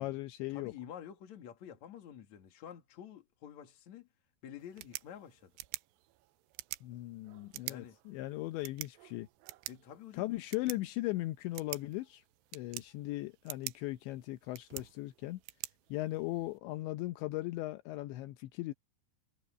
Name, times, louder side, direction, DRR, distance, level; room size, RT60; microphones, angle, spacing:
voice 1, 0.0-0.7 6.8-9.3 10.1-12.2 12.5-15.4 15.9-18.7, left 18 dB, 80° left, 3.1 m, -38 dB
voice 2, 0.5-4.1 4.4-5.5 7.7-8.0 9.7-10.4, left 9 dB, 45° left, 2.8 m, -49 dB
sound 1, 4.6-16.6, right 19 dB, 80° right, 2.6 m, -48 dB
omnidirectional pair, 5.3 m